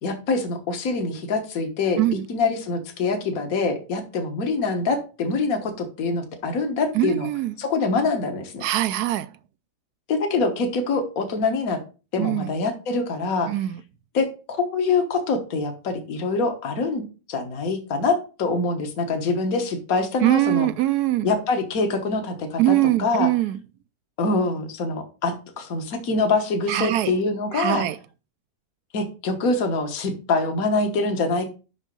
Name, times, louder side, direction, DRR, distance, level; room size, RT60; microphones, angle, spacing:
voice 1, 0.0-2.0 2.3-7.3 7.6-8.6 10.1-11.8 12.1-13.5 14.1-20.7 21.2-23.3 24.2-27.8 28.9-31.5, left 3 dB, 55° left, 1.7 m, -25 dB
voice 2, 6.9-7.5 8.6-9.3 12.2-12.5 13.5-13.8 20.2-21.3 22.6-23.6 26.7-27.1 27.5-28.0, right 15 dB, 75° right, 1.1 m, -22 dB
6.3 x 5.8 x 5.2 m
omnidirectional pair, 1.8 m